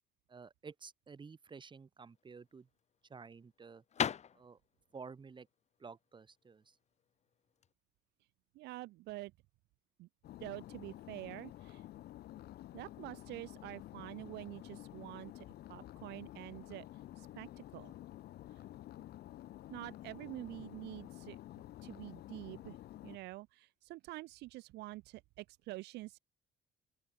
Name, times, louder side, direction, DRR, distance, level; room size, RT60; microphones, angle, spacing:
voice 1, 0.3-2.7 3.1-3.8 4.3-4.6 4.9-5.5 5.8-6.8, right 5 dB, 30° right, 3.2 m, -52 dB
sound 1, 2.1-7.7, left 8 dB, 40° left, 1.6 m, -41 dB
voice 2, 8.5-9.3 10.0-10.1 10.4-11.8 12.7-16.8 17.2-17.9 19.7-21.4 21.8-22.8 23.0-26.2, right 19 dB, 85° right, 0.8 m, -47 dB
sound 2, 10.2-23.2, left 14 dB, 70° left, 4.4 m, -51 dB
open air
cardioid pair, 110°, 17 cm